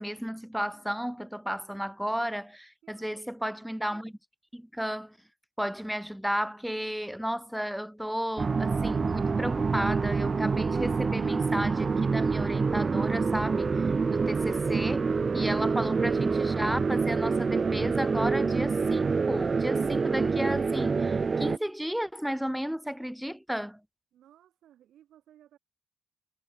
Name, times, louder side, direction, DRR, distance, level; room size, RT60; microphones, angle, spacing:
voice 1, 0.0-4.2 4.5-5.2 5.6-13.7 14.1-23.8, equal, ahead, 1.7 m, -33 dB
voice 2, 2.8-3.4 24.1-25.6, right 11 dB, 75° right, 4.1 m, -60 dB
sound 1, 8.4-21.6, right 4 dB, 35° right, 0.3 m, -27 dB
cardioid pair, 75°, 0 cm